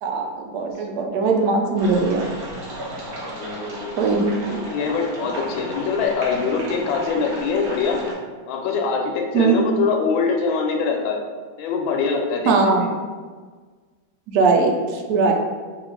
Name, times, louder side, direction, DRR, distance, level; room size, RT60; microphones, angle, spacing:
voice 1, 0.0-2.3 4.0-4.6 9.3-9.5 12.5-12.9 14.3-15.3, right 4 dB, 75° right, 2 dB, 0.9 m, -20 dB
sound 1, 1.8-8.1, right 1 dB, 55° right, 1.2 m, -34 dB
voice 2, 3.3-4.0 4.5-8.0 8.5-11.2 11.6-12.9, left 5 dB, 85° left, 2 dB, 1.3 m, -23 dB
5.0 x 2.4 x 3.1 m, 1.5 s
omnidirectional pair, 2.2 m